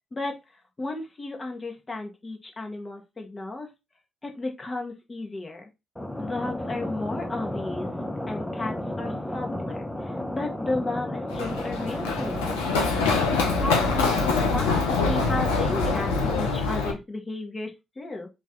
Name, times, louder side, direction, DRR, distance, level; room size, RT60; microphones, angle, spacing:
voice 1, 0.8-3.7 4.2-5.6 6.2-7.9 8.3-12.6 13.2-18.3, left 2 dB, 30° left, 2 dB, 1.5 m, -34 dB
sound 1, 6.0-16.5, left 1 dB, 10° left, 0.8 m, -33 dB
Run, 11.3-16.9, left 4 dB, 80° left, 0.7 m, -25 dB
3.0 x 3.0 x 3.7 m, 0.23 s
hypercardioid pair, 45°, 0 cm